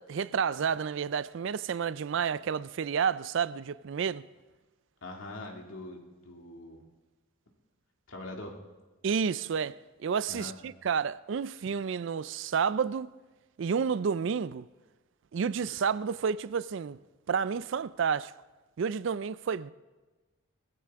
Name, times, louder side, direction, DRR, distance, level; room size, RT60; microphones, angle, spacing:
voice 1, 0.0-4.2 9.0-9.8 10.0-13.1 13.6-14.7 15.3-17.0 17.3-18.3 18.8-19.7, right 6 dB, 60° right, 0.3 m, -30 dB
voice 2, 5.0-6.8 8.1-8.6 10.3-10.6, left 2 dB, 70° left, 2.2 m, -43 dB
19.5 x 15.0 x 3.6 m
head